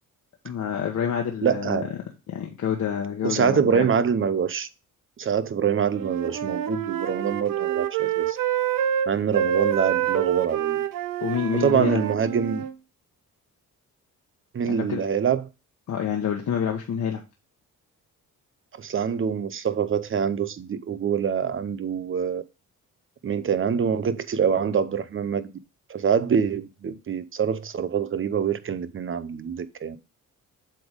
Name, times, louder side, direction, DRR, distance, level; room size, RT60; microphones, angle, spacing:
voice 1, 0.4-1.8 2.3-3.9 11.2-12.0 14.7-15.0 15.9-17.2, left 8 dB, 60° left, 1.2 m, -27 dB
voice 2, 1.4-1.9 3.2-4.7 5.2-8.4 9.1-10.8 11.5-12.6 14.5-15.5 18.8-22.4 23.2-25.5 25.9-30.0, right 7 dB, 40° right, 0.7 m, -25 dB
Wind instrument woodwind instrument, 5.9-12.7, right 10 dB, 80° right, 0.8 m, -27 dB
7.6 x 3.6 x 5.0 m
cardioid pair, 90°, 32 cm